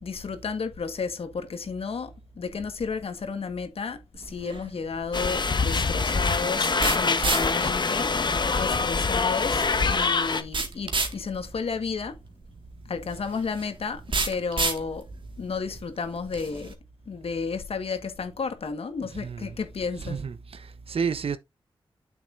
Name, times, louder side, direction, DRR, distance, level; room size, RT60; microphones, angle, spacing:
voice 1, 0.0-12.2 12.8-15.1 15.4-16.7 17.1-20.2, left 5 dB, 75° left, 1.5 m, -32 dB
sound 1, 4.1-16.7, right 3 dB, 55° right, 1.9 m, -33 dB
sound 2, 5.1-10.4, left 4 dB, 50° left, 1.0 m, -24 dB
voice 2, 19.2-19.6 20.0-21.4, right 6 dB, 75° right, 0.8 m, -31 dB
9.1 x 7.1 x 2.6 m
wide cardioid pair, 80°, 10 cm